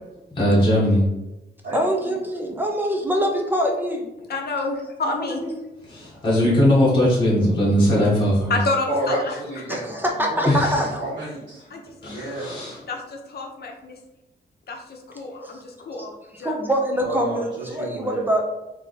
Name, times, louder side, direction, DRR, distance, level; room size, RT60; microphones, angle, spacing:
voice 1, 0.3-1.0 5.9-8.6 10.4-10.8 12.0-12.8, equal, 25° left, -7 dB, 1.2 m, -19 dB
voice 2, 1.7-4.1 5.1-5.6 9.7-11.0 15.4-15.6 16.4-18.4, equal, 10° right, 1 dB, 0.6 m, -24 dB
voice 3, 4.3-5.4 8.5-9.4 9.7-9.8 11.7-11.9 12.9-14.0 14.7-16.6, left 3 dB, 55° left, 2 dB, 0.7 m, -29 dB
voice 4, 8.9-10.2 10.7-12.5 17.0-18.3, right 1 dB, 65° right, -9 dB, 1.2 m, -30 dB
3.5 x 2.8 x 4.0 m, 0.97 s
wide cardioid pair, 155°, 19 cm